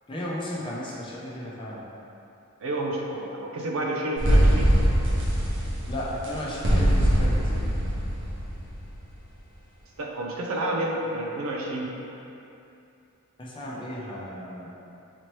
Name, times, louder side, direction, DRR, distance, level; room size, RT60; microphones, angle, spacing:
voice 1, 0.1-1.9 5.9-7.7 13.4-14.8, equal, 25° left, -5 dB, 0.6 m, -34 dB
voice 2, 2.6-4.7 10.0-11.9, right 1 dB, 85° right, -1 dB, 0.5 m, -29 dB
sound 1, 4.2-8.9, equal, 65° right, 0.9 m, -22 dB
4.0 x 3.0 x 3.1 m, 2.8 s
head